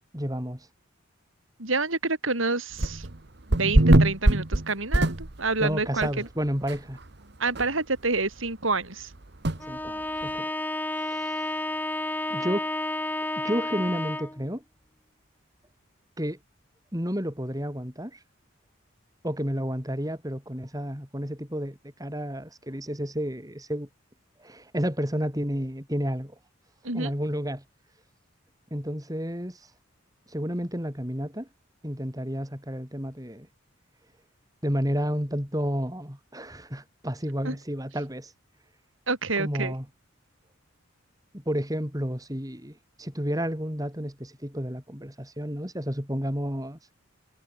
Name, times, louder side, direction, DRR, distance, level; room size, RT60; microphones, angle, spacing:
voice 1, 0.1-0.7 5.6-7.0 9.7-10.5 11.0-11.5 12.3-12.7 13.4-14.6 16.2-16.4 16.9-18.2 19.2-23.9 24.4-26.4 26.9-27.6 28.7-29.6 30.3-31.5 31.8-33.5 34.6-38.3 39.4-39.9 41.3-46.8, equal, 15° right, 6.9 m, -31 dB
voice 2, 1.6-3.1 3.5-6.3 7.4-9.1 26.8-27.1 37.4-37.5 39.1-39.7, right 3 dB, 75° right, 4.5 m, -28 dB
sound 1, 2.8-3.2 3.5-5.6 6.0-6.1 6.7-6.8 7.0-7.1 7.6-7.7 9.4-9.6, right 1 dB, 55° right, 1.4 m, -21 dB
Bowed string instrument, 9.6-14.4, left 1 dB, 10° left, 4.0 m, -31 dB
head